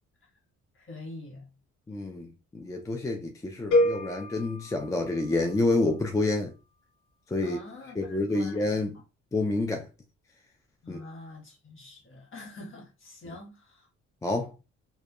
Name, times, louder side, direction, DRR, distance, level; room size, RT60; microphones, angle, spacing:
voice 1, 0.7-1.5 7.4-8.8 10.8-13.9, left 2 dB, 45° left, 1.2 m, -45 dB
voice 2, 1.9-6.5 7.3-7.6 8.0-9.0 9.3-9.9 10.9-11.0 13.3-13.4 14.2-14.5, left 2 dB, 10° left, 0.3 m, -28 dB
sound 1, 3.7-5.8, left 1 dB, 75° left, 0.7 m, -28 dB
2.5 x 2.3 x 2.3 m
cardioid pair, 90°, 30 cm